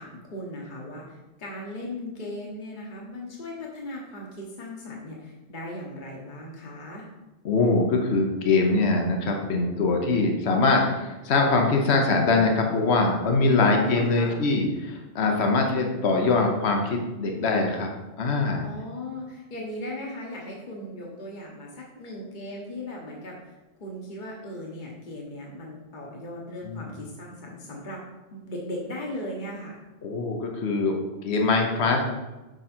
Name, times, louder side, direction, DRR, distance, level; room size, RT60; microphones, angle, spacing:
voice 1, 0.0-7.1 13.4-14.4 18.6-28.0 28.3-29.8, left 1 dB, 45° left, -2 dB, 1.3 m, -37 dB
voice 2, 7.4-17.9 18.2-18.7 26.6-26.9 30.0-31.0 31.2-32.1, left 3 dB, 70° left, 2 dB, 1.3 m, -23 dB
6.3 x 6.2 x 4.4 m, 1.1 s
omnidirectional pair, 1.2 m